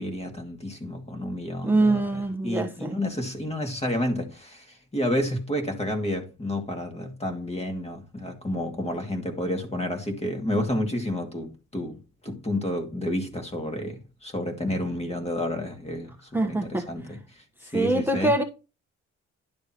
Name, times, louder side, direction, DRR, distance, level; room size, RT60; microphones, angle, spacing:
voice 1, 0.0-18.3, left 1 dB, 20° left, 2.3 m, -30 dB
voice 2, 1.6-3.0 16.3-16.9 17.7-18.4, right 2 dB, 5° right, 1.1 m, -24 dB
11.0 x 6.7 x 2.9 m
cardioid pair, 90°, 30 cm